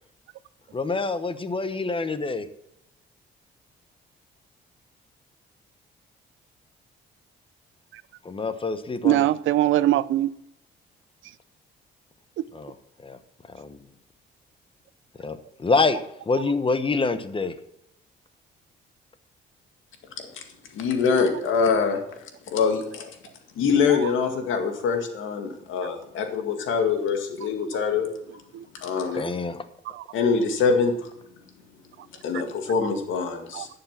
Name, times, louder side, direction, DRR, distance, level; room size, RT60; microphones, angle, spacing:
voice 1, 0.7-2.5 8.2-9.2 12.5-12.7 13.0-13.2 13.6-13.8 15.2-16.0 16.3-17.5 29.2-29.6, left 4 dB, 25° left, 1.0 m, -26 dB
voice 2, 9.0-10.3 12.4-12.5 23.9-24.1 28.5-28.7 29.8-30.0 33.5-33.7, right 14 dB, 80° right, 0.6 m, -22 dB
voice 3, 20.7-22.0 22.5-23.1 23.6-28.1 28.8-29.3 30.1-31.1 32.2-33.7, left 5 dB, 80° left, 2.0 m, -24 dB
11.0 x 6.8 x 5.9 m
cardioid pair, 90°, 20 cm